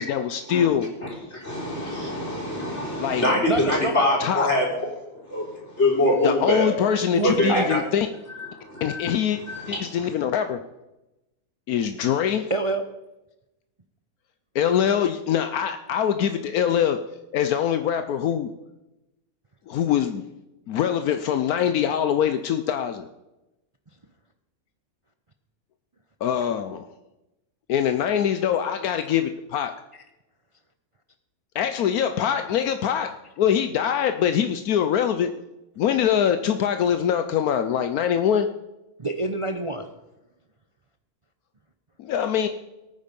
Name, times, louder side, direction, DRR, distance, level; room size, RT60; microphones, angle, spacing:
voice 1, 0.0-0.9 3.0-3.3 4.2-4.5 6.2-8.1 8.8-9.4 9.7-10.6 11.7-12.5 14.5-17.0 17.3-18.5 19.7-20.2 20.7-23.1 26.2-26.9 27.7-29.8 31.5-35.3 35.8-38.5 42.1-42.5, left 9 dB, 80° left, 9 dB, 1.2 m, -23 dB
voice 2, 1.0-4.7 5.2-6.7 7.2-7.8 8.3-10.1, left 1 dB, 50° left, -2 dB, 4.5 m, -25 dB
voice 3, 3.5-4.1 7.1-7.7 12.5-12.8 39.0-39.9, right 2 dB, 30° right, 7 dB, 0.7 m, -26 dB
18.0 x 9.3 x 5.3 m, 0.97 s
omnidirectional pair, 1.6 m